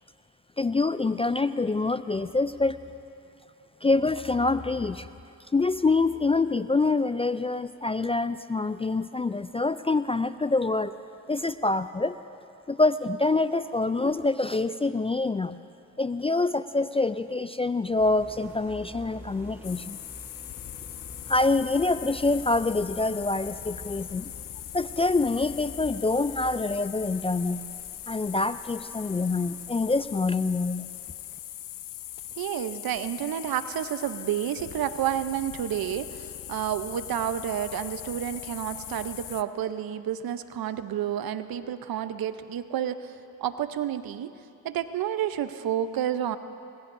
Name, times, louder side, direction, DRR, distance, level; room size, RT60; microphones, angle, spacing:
voice 1, 0.6-2.8 3.8-5.1 5.5-10.9 11.3-12.2 12.7-15.6 16.0-20.0 21.3-24.3 24.7-27.6 28.1-30.9, left 3 dB, 15° left, 13 dB, 0.3 m, -26 dB
sound 1, 17.8-31.7, equal, 5° right, 2.9 m, -49 dB
sound 2, 19.6-39.4, left 13 dB, 60° left, 0.6 m, -40 dB
voice 2, 32.4-43.1 43.4-44.3 44.6-46.4, right 10 dB, 65° right, 12 dB, 0.8 m, -30 dB
25.5 x 21.0 x 2.7 m, 2.6 s
supercardioid pair, 50°, 38 cm